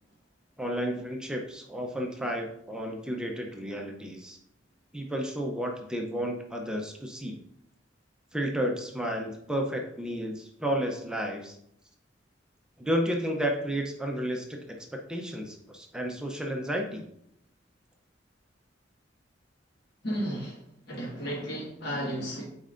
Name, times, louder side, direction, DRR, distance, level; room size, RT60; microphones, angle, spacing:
voice 1, 0.6-4.4 4.9-7.4 8.3-11.6 12.8-14.8 15.1-17.1, equal, 5° right, 1 dB, 0.6 m, -32 dB
voice 2, 20.0-22.4, equal, 60° left, -5 dB, 1.5 m, -33 dB
8.6 x 4.3 x 2.5 m, 0.74 s
head